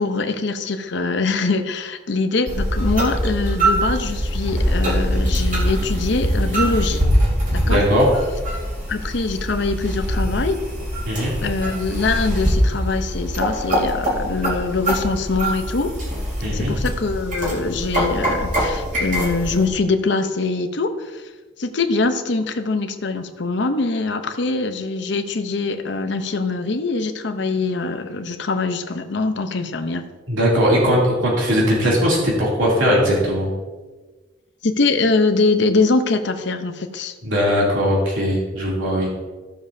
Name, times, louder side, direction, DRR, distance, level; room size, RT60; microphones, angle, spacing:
voice 1, 0.0-7.0 7.5-7.8 8.9-10.6 11.4-16.0 16.5-21.3 21.6-30.1 34.6-37.1, left 3 dB, 60° left, 7 dB, 0.8 m, -23 dB
sound 1, 2.5-19.7, equal, 45° right, 2.7 m, -23 dB
voice 2, 7.6-8.1 11.0-11.3 16.4-16.7 30.3-33.5 37.2-39.1, equal, 85° right, -5 dB, 2.9 m, -19 dB
15.0 x 7.0 x 2.7 m, 1.3 s
head